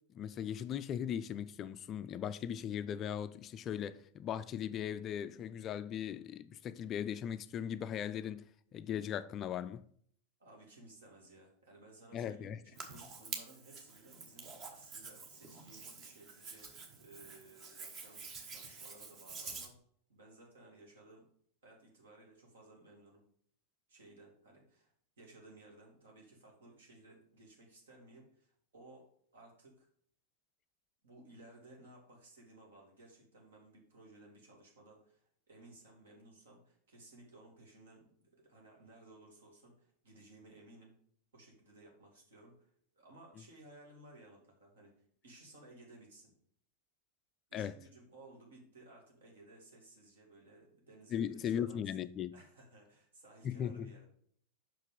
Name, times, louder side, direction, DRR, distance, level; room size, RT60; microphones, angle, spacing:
voice 1, 0.1-9.8 12.1-12.6 47.5-47.7 51.1-52.3 53.4-53.9, left 9 dB, 30° left, 0.3 m, -38 dB
voice 2, 10.4-19.8 20.1-21.3 21.6-23.2 23.9-24.9 25.2-29.9 31.0-40.9 41.3-44.9 45.2-46.3 47.5-52.0 52.3-54.1, right 2 dB, 65° right, 2.5 m, -58 dB
Hands, 12.7-19.7, right 4 dB, 30° right, 1.2 m, -48 dB
5.8 x 5.1 x 5.3 m
figure-of-eight pair, 90°, 0 cm